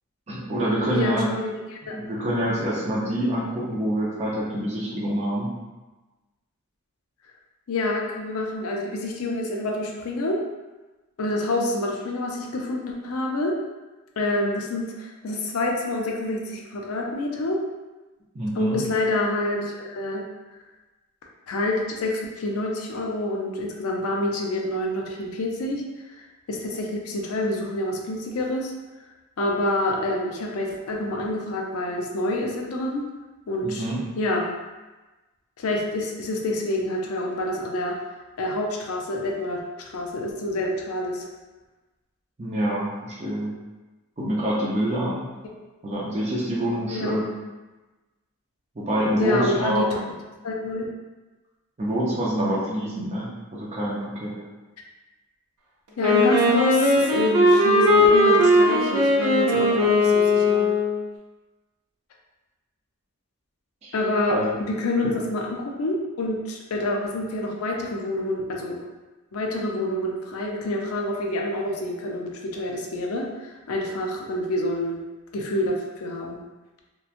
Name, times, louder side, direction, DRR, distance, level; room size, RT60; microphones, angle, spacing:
voice 1, 0.3-1.3 1.9-5.5 18.3-18.8 33.6-34.0 42.4-43.5 44.2-45.3 45.8-47.3 48.8-49.9 51.8-54.3 63.8-63.9 64.3-64.6, equal, 30° right, -7 dB, 0.5 m, -26 dB
voice 2, 0.8-2.0 7.7-10.4 11.2-13.6 14.2-17.6 18.6-20.2 21.5-25.8 26.1-28.7 29.4-33.1 33.5-33.9 34.2-34.5 35.6-38.0 38.4-39.6 39.9-41.3 46.9-47.2 49.2-50.0 50.4-50.9 56.0-60.7 63.9-68.8 69.3-75.0 75.3-76.4, left 1 dB, 75° left, 0 dB, 0.4 m, -27 dB
Wind instrument woodwind instrument, 56.0-61.0, left 1 dB, 85° right, 0.6 m, -18 dB
2.8 x 2.2 x 2.4 m, 1.2 s
head